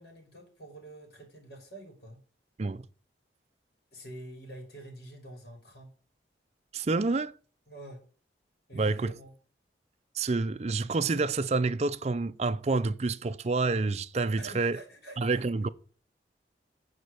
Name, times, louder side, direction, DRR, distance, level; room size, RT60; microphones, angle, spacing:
voice 1, 0.0-2.2 3.9-5.9 7.7-8.0 8.7-9.3 14.4-15.4, right 1 dB, 60° left, 3.5 m, -47 dB
voice 2, 6.7-7.3 8.7-9.1 10.2-14.8 15.2-15.7, right 3 dB, 35° right, 0.4 m, -28 dB
9.5 x 4.5 x 6.9 m
head